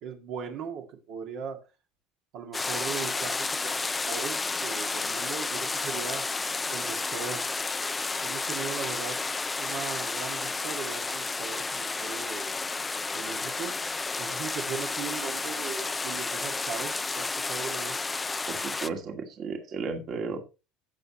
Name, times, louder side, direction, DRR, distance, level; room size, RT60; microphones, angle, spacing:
voice 1, 0.0-1.6 2.3-6.3 6.7-7.5 8.2-9.2 9.6-12.5 13.1-13.8 14.2-18.0, right 7 dB, 60° right, 2.1 m, -38 dB
sound 1, 2.5-18.9, left 3 dB, 15° left, 0.4 m, -31 dB
voice 2, 18.5-20.4, right 5 dB, 45° right, 2.2 m, -34 dB
16.0 x 6.5 x 3.0 m
cardioid pair, 130°, 0 cm